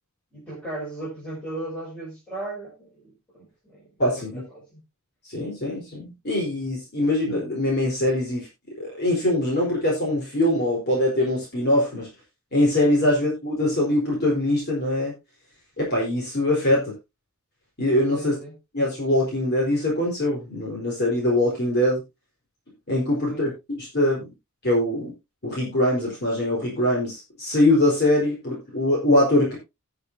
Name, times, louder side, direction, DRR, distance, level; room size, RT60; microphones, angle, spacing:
voice 1, 0.3-4.8 18.2-18.6 23.3-23.4, right 2 dB, 5° left, 5.8 m, -37 dB
voice 2, 4.0-4.4 5.3-8.5 8.8-12.1 12.5-15.1 15.8-16.9 17.8-18.3 18.7-22.0 22.9-24.3 24.6-25.1 25.4-29.6, left 1 dB, 45° left, 4.2 m, -23 dB
19.0 x 6.6 x 2.7 m
head